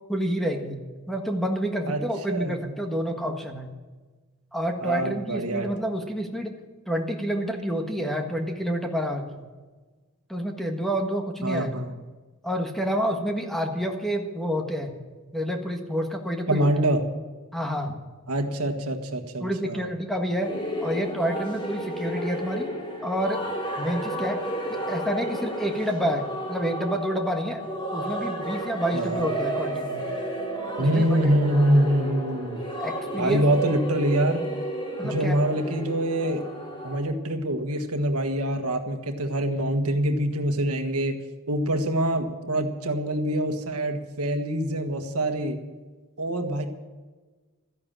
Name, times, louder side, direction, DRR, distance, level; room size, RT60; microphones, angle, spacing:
voice 1, 0.1-0.8 1.1-3.7 4.5-6.5 6.9-9.2 10.3-11.7 12.4-15.0 15.3-16.7 17.5-18.0 19.4-20.5 20.8-22.7 23.0-23.4 23.8-24.4 24.7-27.6 27.9-30.0 30.8-31.1 31.5-31.7 32.8-33.4 35.0-35.4, equal, ahead, 3 dB, 1.5 m, -28 dB
voice 2, 2.3-2.6 4.8-5.7 11.4-11.9 16.5-17.0 18.3-19.9 28.9-29.3 30.8-32.6 33.2-34.4 35.0-36.4 36.8-41.2 41.5-45.6 46.2-46.7, right 1 dB, 80° right, 6 dB, 1.5 m, -25 dB
sound 1, 20.4-37.0, right 1 dB, 20° left, 3.2 m, -32 dB
14.0 x 10.5 x 7.5 m, 1.3 s
head